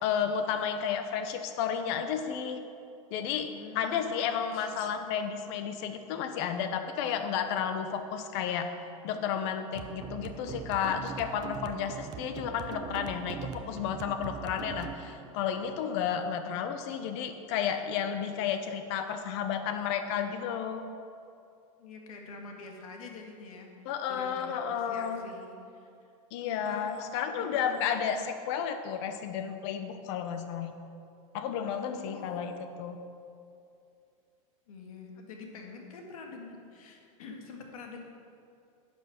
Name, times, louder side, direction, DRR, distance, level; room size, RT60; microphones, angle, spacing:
voice 1, 0.0-2.6 3.1-8.7 9.0-20.8 23.8-25.2 26.3-30.7 31.3-33.0, left 8 dB, 50° left, 8 dB, 1.0 m, -32 dB
voice 2, 3.5-4.9 21.8-23.7 24.1-25.9 26.4-26.9 27.4-27.7 31.9-32.6 34.7-38.0, left 4 dB, 80° left, 1 dB, 2.0 m, -46 dB
sound 1, 9.7-16.7, right 7 dB, 25° right, 0.5 m, -42 dB
10.5 x 7.2 x 6.0 m, 2.6 s
supercardioid pair, 145°, 18 cm